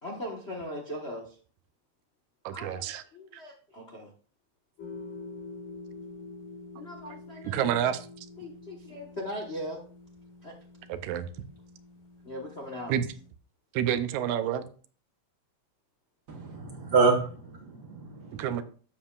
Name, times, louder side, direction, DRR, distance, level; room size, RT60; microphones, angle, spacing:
voice 1, 0.0-1.4 2.5-4.1 6.7-7.8 8.4-9.8 10.4-10.5 12.2-12.9, equal, 45° left, -1 dB, 0.8 m, -39 dB
voice 2, 2.4-3.0 3.3-3.4 7.4-8.1 10.9-11.3 12.9-13.1 13.7-14.7 18.3-18.6, right 10 dB, 85° right, 12 dB, 2.1 m, -29 dB
sound 1, 4.8-13.3, left 3 dB, 90° left, 3.5 m, -46 dB
voice 3, 16.3-18.5, right 4 dB, 60° right, 3 dB, 1.1 m, -27 dB
11.5 x 7.4 x 2.4 m, 0.41 s
omnidirectional pair, 3.3 m